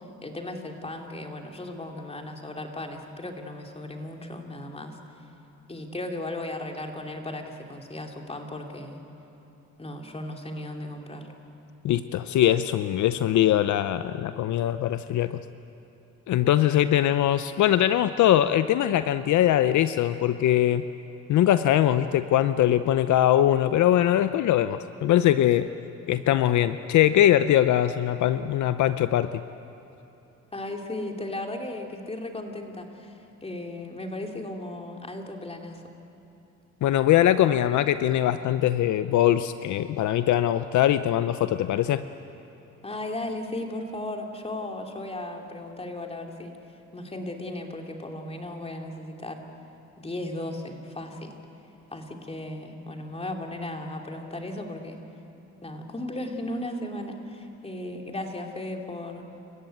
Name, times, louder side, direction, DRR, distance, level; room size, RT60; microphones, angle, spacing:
voice 1, 0.2-5.0 5.7-9.0 9.8-11.3 30.5-35.8 42.8-46.6 46.9-49.4 50.0-51.3 51.9-55.0 55.6-59.3, left 1 dB, 20° left, 2 dB, 3.0 m, -36 dB
voice 2, 11.8-15.4 16.3-20.8 21.3-25.7 26.1-29.3 36.8-42.0, left 12 dB, 75° left, 12 dB, 0.7 m, -22 dB
29.0 x 15.0 x 9.4 m, 2.9 s
cardioid pair, 90°, 30 cm